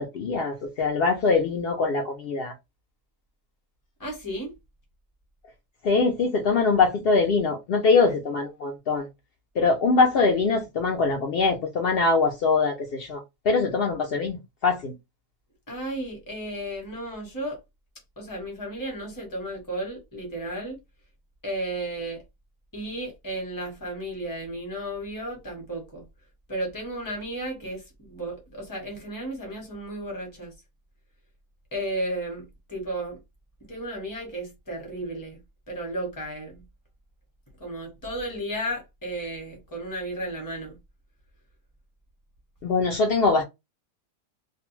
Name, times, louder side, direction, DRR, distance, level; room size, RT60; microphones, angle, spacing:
voice 1, 0.0-2.5 5.8-9.1 9.6-14.9 42.6-43.4, left 4 dB, 75° left, 0.5 m, -23 dB
voice 2, 4.0-4.5 15.7-17.6 18.2-20.8 21.4-22.2 22.7-26.0 26.5-30.5 31.7-33.2 33.7-35.4 35.7-36.6 37.6-40.8, right 1 dB, 15° left, 0.9 m, -33 dB
2.4 x 2.1 x 3.0 m
omnidirectional pair, 1.6 m